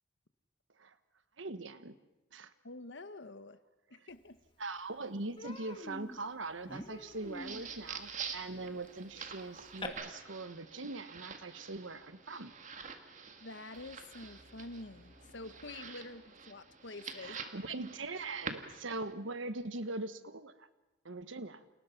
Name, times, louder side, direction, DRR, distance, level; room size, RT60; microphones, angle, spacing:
voice 1, 1.4-2.0 2.3-2.5 4.6-12.5 17.2-20.7 21.0-21.6, right 2 dB, 80° right, 1.3 m, -41 dB
voice 2, 2.6-3.6 3.9-4.4 13.4-17.4, left 2 dB, 70° left, 1.1 m, -47 dB
Human voice, 4.4-4.5 4.8-5.0 5.4-9.9, left 2 dB, 25° left, 2.1 m, -47 dB
sound 1, 7.1-19.1, right 5 dB, 40° right, 1.9 m, -47 dB
sound 2, 13.7-16.7, equal, 45° left, 1.7 m, -63 dB
30.0 x 28.0 x 5.9 m
head